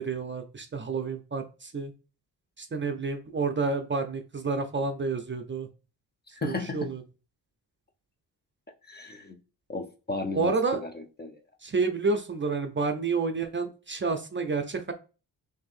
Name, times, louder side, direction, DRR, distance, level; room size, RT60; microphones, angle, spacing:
voice 1, 0.0-1.9 2.6-5.7 6.4-7.0 10.4-10.8 11.6-14.9, right 4 dB, 30° right, 5 dB, 0.5 m, -29 dB
voice 2, 6.4-6.8 8.9-9.4 9.7-11.4, left 3 dB, 25° left, 6 dB, 0.6 m, -35 dB
6.0 x 2.7 x 2.4 m, 0.34 s
cardioid pair, 95°, 42 cm